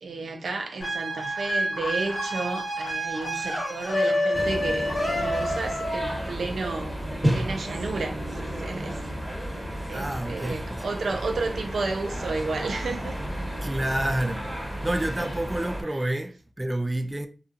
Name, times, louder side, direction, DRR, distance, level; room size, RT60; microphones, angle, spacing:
voice 1, 0.0-7.0 7.3-9.0 9.9-13.1, right 3 dB, 90° right, 0.4 m, -32 dB
sound 1, 0.8-6.3, equal, 85° left, 0.9 m, -28 dB
sound 2, 4.3-15.8, equal, 5° right, 1.1 m, -32 dB
voice 2, 9.9-10.9 13.6-14.5 14.8-17.3, right 1 dB, 25° right, 0.3 m, -29 dB
2.7 x 2.3 x 2.4 m
cardioid pair, 50°, 0 cm